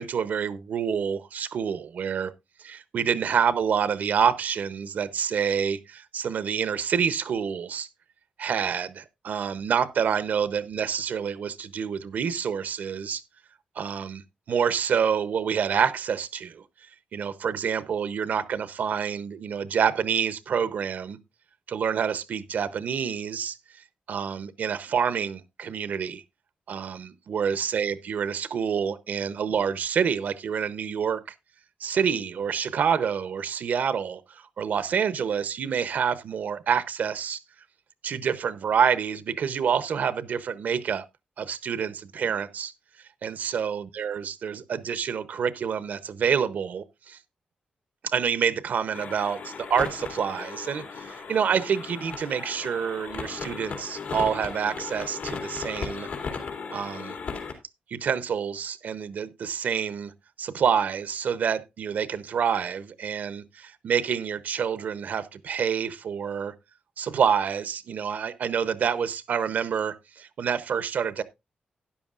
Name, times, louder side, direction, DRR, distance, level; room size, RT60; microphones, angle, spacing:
voice 1, 0.0-2.3 2.6-7.9 8.4-13.2 13.8-14.2 14.5-16.6 17.1-21.2 21.7-26.2 26.7-31.2 31.8-37.4 38.0-41.0 41.4-42.7 43.2-47.2 48.0-56.1 56.7-57.2 57.9-60.1 60.4-66.5 67.0-71.2, right 7 dB, 70° right, 0.7 m, -27 dB
sound 1, 48.9-57.5, left 5 dB, 75° left, 2.6 m, -36 dB
12.5 x 10.0 x 2.4 m
wide cardioid pair, 145°, 3 cm